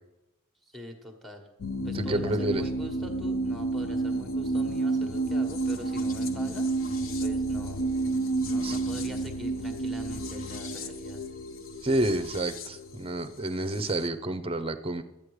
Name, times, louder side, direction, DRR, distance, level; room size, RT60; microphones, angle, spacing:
voice 1, 0.6-1.5 1.8-7.8 8.5-11.2, equal, ahead, 3 dB, 1.4 m, -43 dB
sound 1, 1.6-14.1, right 2 dB, 65° left, 0.9 m, -30 dB
voice 2, 1.9-2.6 8.6-8.8 11.8-15.0, right 1 dB, 25° right, 11 dB, 0.6 m, -29 dB
12.5 x 8.7 x 4.9 m, 0.98 s
head